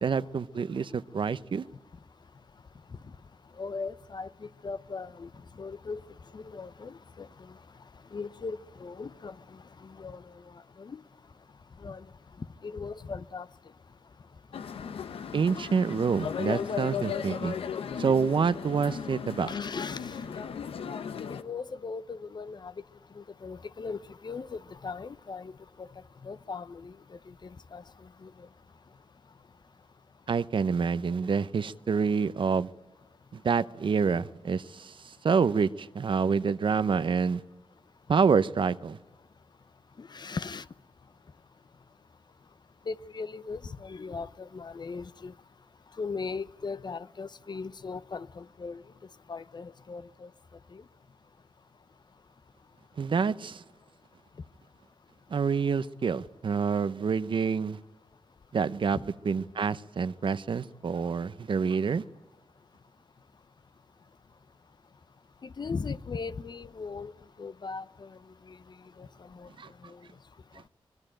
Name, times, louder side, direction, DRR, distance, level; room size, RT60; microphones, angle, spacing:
voice 1, 0.0-1.7 15.3-17.6 18.0-19.5 30.3-32.7 33.3-37.4 38.1-39.0 53.0-53.6 55.3-57.8 58.5-62.0 69.6-69.7 70.5-70.6, right 5 dB, 60° right, 0.8 m, -27 dB
voice 2, 3.5-6.0 6.3-7.6 8.1-11.0 11.8-12.1 12.4-13.5 19.5-20.4 21.4-22.7 23.1-28.5 40.0-40.7 42.9-45.3 45.9-48.9 49.3-50.3 50.7-50.8 58.9-59.0 65.4-67.1 67.4-69.5 69.8-70.1, left 4 dB, 50° left, 0.7 m, -39 dB
sound 1, 14.5-21.4, left 7 dB, 85° left, 1.0 m, -36 dB
24.5 x 19.5 x 9.0 m
cardioid pair, 55°, 9 cm